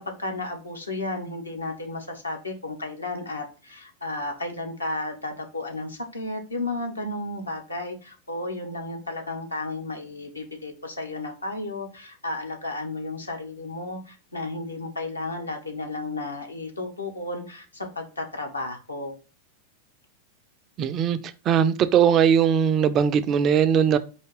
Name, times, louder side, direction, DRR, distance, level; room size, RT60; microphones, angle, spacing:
voice 1, 0.0-19.2, left 2 dB, 80° left, 0.9 m, -33 dB
voice 2, 20.8-21.2 21.5-24.0, right 8 dB, 30° right, 0.3 m, -20 dB
4.7 x 2.8 x 3.0 m
figure-of-eight pair, 90°, 0 cm